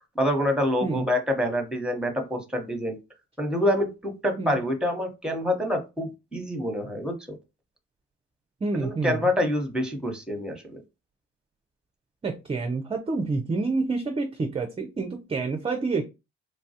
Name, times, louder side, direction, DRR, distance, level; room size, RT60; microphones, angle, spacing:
voice 1, 0.1-3.0 3.4-7.1 8.7-10.8, left 1 dB, 5° right, 0.9 m, -26 dB
voice 2, 8.6-9.2 12.2-16.0, right 3 dB, 20° right, 0.4 m, -28 dB
3.3 x 2.2 x 2.7 m
cardioid pair, 90°, 30 cm